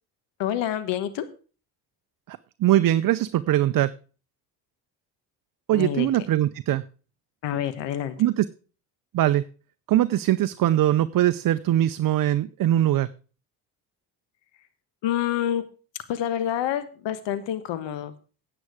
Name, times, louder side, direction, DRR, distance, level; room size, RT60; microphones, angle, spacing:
voice 1, 0.4-1.3 5.7-6.1 7.4-8.1 15.0-15.6 16.1-18.1, left 11 dB, 70° left, 12 dB, 1.3 m, -27 dB
voice 2, 2.3-3.9 5.7-6.8 8.2-8.4 9.1-9.4 9.9-13.1, right 13 dB, 45° right, 12 dB, 0.6 m, -21 dB
9.5 x 8.8 x 4.9 m, 0.37 s
supercardioid pair, 75°, 45 cm